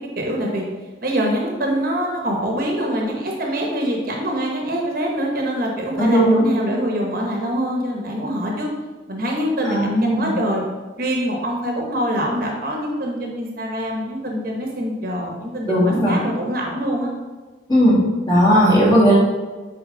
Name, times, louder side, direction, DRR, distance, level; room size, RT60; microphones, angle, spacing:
voice 1, 0.2-0.6 1.0-8.7 9.1-10.6 11.0-17.1, equal, 50° right, 0 dB, 1.0 m, -24 dB
voice 2, 6.0-6.4 9.7-10.3 15.6-16.2 17.7-18.0 18.3-19.1, equal, 25° left, -8 dB, 2.0 m, -16 dB
6.5 x 4.3 x 3.8 m, 1.3 s
head